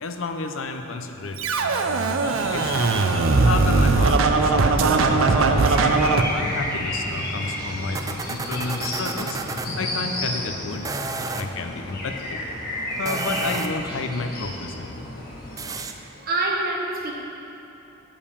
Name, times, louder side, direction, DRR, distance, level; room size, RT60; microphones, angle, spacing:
voice 1, 0.0-2.9 3.2-10.9 11.3-12.4 13.0-15.1, left 3 dB, 70° left, 6 dB, 0.6 m, -31 dB
Scratching (performance technique), 1.4-6.2, right 3 dB, 80° right, 0.6 m, -20 dB
sound 1, 2.2-15.8, left 1 dB, 50° left, 1.7 m, -32 dB
sound 2, 5.6-9.7 10.7-11.5 12.9-13.9 15.6-15.9, right 3 dB, 15° right, 0.4 m, -33 dB
voice 2, 15.8-17.1, right 2 dB, 50° right, -1 dB, 1.3 m, -27 dB
8.7 x 5.2 x 6.9 m, 3.0 s
head